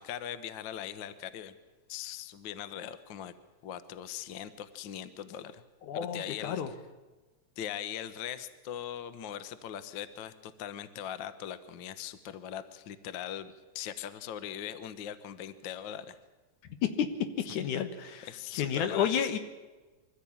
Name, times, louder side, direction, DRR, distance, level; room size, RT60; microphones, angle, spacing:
voice 1, 0.0-1.5 1.9-3.3 3.6-5.6 5.9-6.7 7.6-16.2 18.3-19.1, left 10 dB, 60° left, 13 dB, 1.2 m, -40 dB
voice 2, 5.9-6.7 16.8-19.4, left 8 dB, 80° left, 9 dB, 2.9 m, -31 dB
23.5 x 15.0 x 8.7 m, 1.2 s
omnidirectional pair, 3.4 m